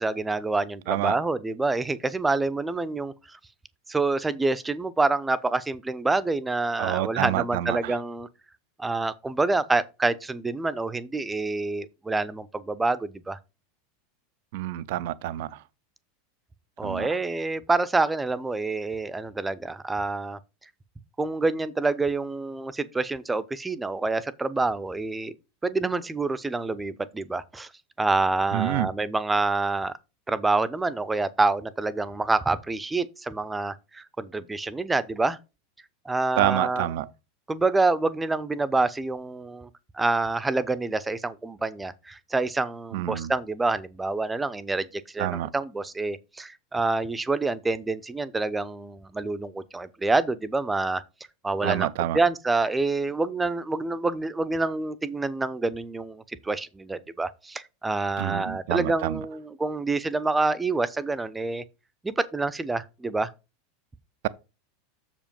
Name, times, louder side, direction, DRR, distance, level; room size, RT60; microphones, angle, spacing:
voice 1, 0.0-3.4 3.9-8.3 8.8-13.4 16.8-20.4 21.2-25.3 25.6-27.7 28.0-29.9 30.3-35.4 36.0-36.9 37.5-39.7 39.9-51.0 51.4-61.6 62.0-63.3, right 3 dB, 10° right, 0.7 m, -27 dB
voice 2, 6.8-7.8 14.5-15.5 16.8-17.1 28.5-28.9 36.4-37.1 42.9-43.3 45.2-45.5 51.6-52.2 58.2-59.2, right 14 dB, 60° right, 0.5 m, -27 dB
7.0 x 5.0 x 5.3 m
figure-of-eight pair, 85°, 0 cm